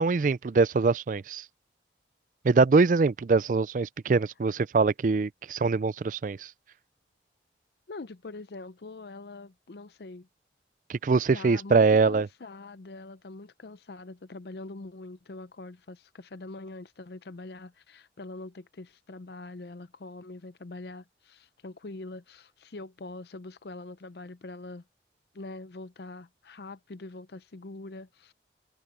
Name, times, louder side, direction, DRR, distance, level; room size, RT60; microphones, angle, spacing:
voice 1, 0.0-1.4 2.4-6.5 10.9-12.3, right 4 dB, 45° right, 0.4 m, -23 dB
voice 2, 7.9-10.3 11.3-24.8 25.3-28.3, left 2 dB, 65° left, 0.6 m, -43 dB
head